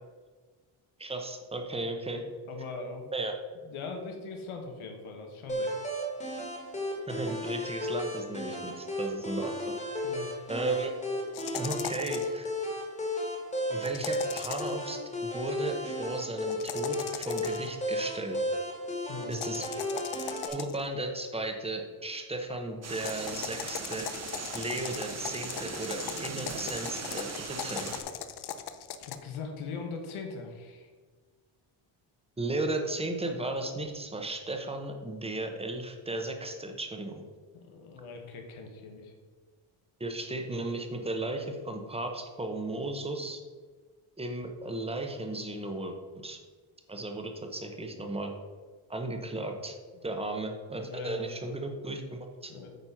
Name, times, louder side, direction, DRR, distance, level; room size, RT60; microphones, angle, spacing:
voice 1, 1.0-2.2 3.1-3.3 7.1-9.5 10.5-10.9 11.5-12.5 13.7-18.4 19.3-20.0 20.5-24.1 24.5-27.9 32.4-37.2 40.0-43.4 44.2-46.0 46.2-46.4 46.9-48.3 48.9-49.7 50.0-52.7, right 2 dB, 10° right, 4 dB, 0.8 m, -35 dB
voice 2, 2.5-3.0 3.6-5.8 10.0-10.4 19.1-19.4 29.0-30.9 37.5-39.1 49.9-50.1 50.8-51.2 52.5-52.7, left 4 dB, 85° left, 3 dB, 1.5 m, -40 dB
sound 1, 5.5-20.5, left 1 dB, 15° left, 1.5 m, -34 dB
sound 2, 11.3-12.4 13.8-14.8 16.5-17.7 19.3-20.9 22.9-29.2, left 9 dB, 55° left, 0.6 m, -39 dB
sound 3, 22.8-28.0, right 4 dB, 35° right, 1.0 m, -39 dB
9.0 x 4.2 x 5.8 m, 1.5 s
cardioid pair, 165°, 48 cm